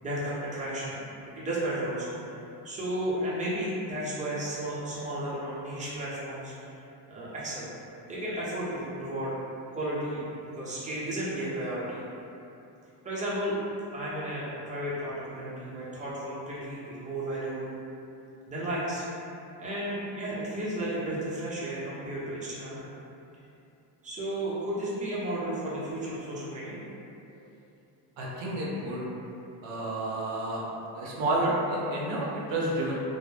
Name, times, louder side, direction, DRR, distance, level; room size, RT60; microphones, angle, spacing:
voice 1, 0.0-2.2 2.6-6.8 7.1-7.7 8.1-9.3 9.7-10.2 10.5-12.0 13.0-13.6 13.9-17.6 18.5-19.0 19.6-22.8 24.0-26.8, right 1 dB, 15° right, -8 dB, 0.7 m, -33 dB
voice 2, 28.2-29.0 29.6-30.6 30.9-33.0, right 1 dB, 65° right, -5 dB, 0.6 m, -30 dB
2.2 x 2.1 x 3.2 m, 2.9 s
supercardioid pair, 90°, 49 cm